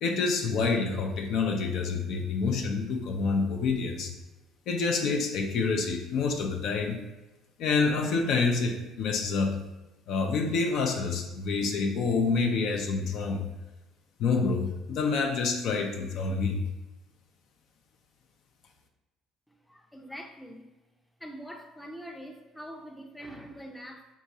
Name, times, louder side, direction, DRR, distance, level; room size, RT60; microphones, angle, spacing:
voice 1, 0.0-4.1 4.7-7.0 7.6-9.6 10.1-13.4 14.2-16.6, left 4 dB, 60° left, 2 dB, 0.5 m, -27 dB
voice 2, 19.5-20.7 21.2-24.1, equal, 5° left, 3 dB, 0.5 m, -44 dB
3.7 x 2.8 x 2.7 m, 1.1 s
hypercardioid pair, 60°, 0 cm